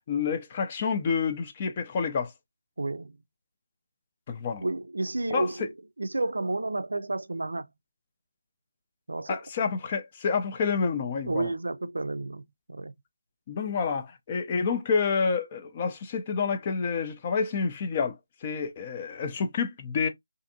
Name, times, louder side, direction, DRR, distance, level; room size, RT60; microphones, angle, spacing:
voice 1, 0.1-2.3 4.3-4.6 5.3-5.7 9.3-11.5 13.5-20.1, left 5 dB, 25° left, 0.4 m, -28 dB
voice 2, 2.8-3.2 4.6-5.7 6.0-7.6 9.1-9.4 11.3-12.4 12.7-12.9, right 2 dB, 80° right, 0.4 m, -31 dB
2.5 x 2.4 x 2.6 m
figure-of-eight pair, 165°, 0 cm